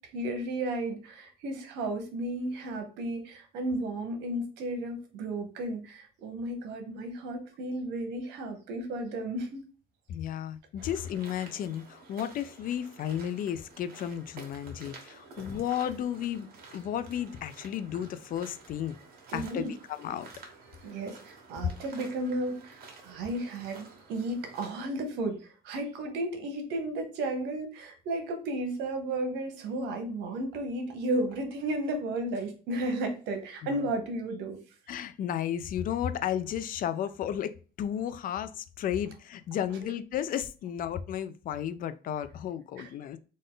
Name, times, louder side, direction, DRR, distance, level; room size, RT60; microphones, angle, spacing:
voice 1, 0.1-9.6 19.3-19.7 20.8-34.6 42.8-42.9, right 1 dB, 85° right, 1.1 m, -33 dB
voice 2, 10.1-19.0 19.3-20.3 33.6-33.8 34.9-43.2, left 10 dB, 55° left, 0.4 m, -33 dB
sound 1, 10.8-24.7, right 4 dB, 60° right, 1.4 m, -51 dB
3.8 x 2.5 x 3.7 m
cardioid pair, 110°, 17 cm